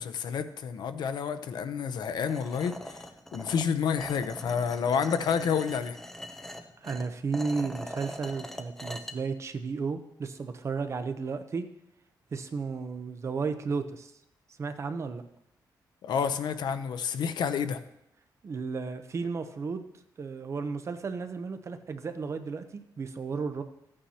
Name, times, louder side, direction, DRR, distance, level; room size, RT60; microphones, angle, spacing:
voice 1, 0.0-3.0 3.3-6.0 16.0-17.8, left 7 dB, 75° left, 10 dB, 0.7 m, -29 dB
sound 1, 2.3-9.1, equal, 5° left, 0.7 m, -42 dB
voice 2, 6.8-11.7 12.3-14.1 14.6-15.2 18.4-19.9 20.2-23.6, right 4 dB, 40° right, 8 dB, 0.7 m, -33 dB
14.0 x 8.7 x 2.9 m, 0.82 s
wide cardioid pair, 135°, 7 cm